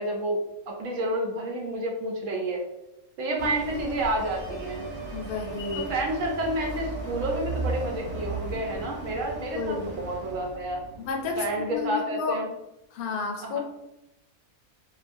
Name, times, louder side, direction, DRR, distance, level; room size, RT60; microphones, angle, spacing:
voice 1, 0.0-2.6 3.2-4.8 5.9-10.8 11.4-12.5 13.4-13.6, right 1 dB, 70° right, 0 dB, 0.8 m, -30 dB
sound 1, 3.4-11.7, right 3 dB, 20° right, 0.8 m, -37 dB
sound 2, 4.2-8.6, right 3 dB, 85° right, 1.2 m, -42 dB
voice 2, 5.1-5.8 9.5-9.9 11.0-11.4 11.7-12.4 12.9-13.6, left 4 dB, 75° left, 2 dB, 1.0 m, -31 dB
2.7 x 2.3 x 2.5 m, 0.92 s
omnidirectional pair, 1.6 m